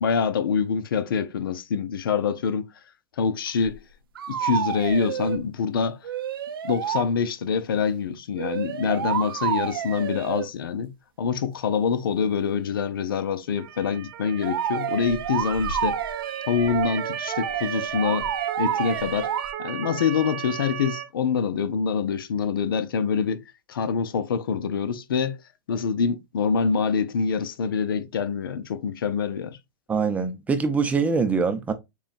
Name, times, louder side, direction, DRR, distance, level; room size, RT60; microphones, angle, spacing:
voice 1, 0.0-2.7 3.2-3.8 4.3-6.0 6.6-16.0 16.5-18.3 18.6-19.3 19.6-25.4 25.7-29.6, left 6 dB, 80° left, 0.6 m, -25 dB
sound 1, 3.6-3.8 4.1-5.4 6.0-7.1 8.3-10.5 14.4-19.5, right 8 dB, 80° right, 0.6 m, -29 dB
Motor vehicle (road) / Siren, 13.6-21.0, right 11 dB, 50° right, 0.9 m, -35 dB
voice 2, 29.9-31.7, right 5 dB, 10° right, 0.6 m, -23 dB
6.8 x 2.3 x 2.5 m
hypercardioid pair, 130°, 12 cm